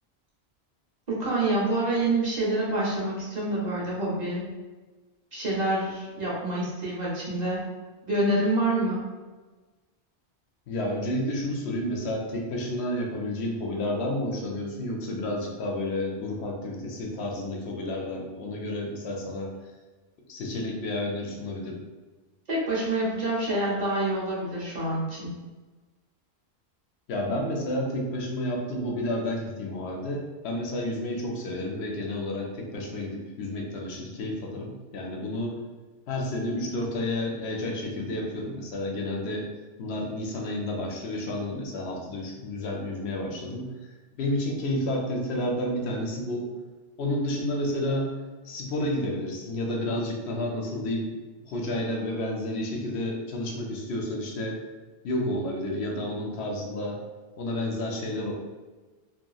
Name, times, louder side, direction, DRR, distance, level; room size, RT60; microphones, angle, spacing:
voice 1, 1.1-4.4 5.3-7.6 8.1-9.0 22.5-25.3, right 2 dB, 45° right, -7 dB, 0.8 m, -27 dB
voice 2, 10.7-19.5 20.3-21.8 27.1-35.6 36.1-39.5 39.8-43.7 44.1-46.5 47.0-48.2 48.4-51.1 51.5-54.6 55.0-57.0 57.4-58.3, left 1 dB, 80° left, 0 dB, 0.9 m, -30 dB
2.8 x 2.4 x 2.3 m, 1.3 s
omnidirectional pair, 1.1 m